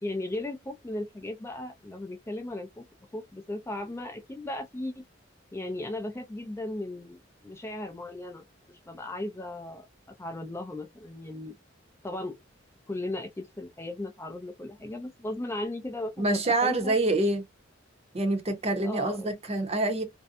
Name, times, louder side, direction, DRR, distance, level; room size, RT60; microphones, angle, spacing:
voice 1, 0.0-2.8 3.1-5.0 5.5-9.9 10.2-11.6 12.0-12.4 12.9-16.9 18.8-19.3, left 1 dB, 15° left, 0.4 m, -36 dB
voice 2, 16.2-17.4 18.1-20.0, right 2 dB, 35° right, 0.7 m, -26 dB
2.6 x 2.2 x 2.5 m
head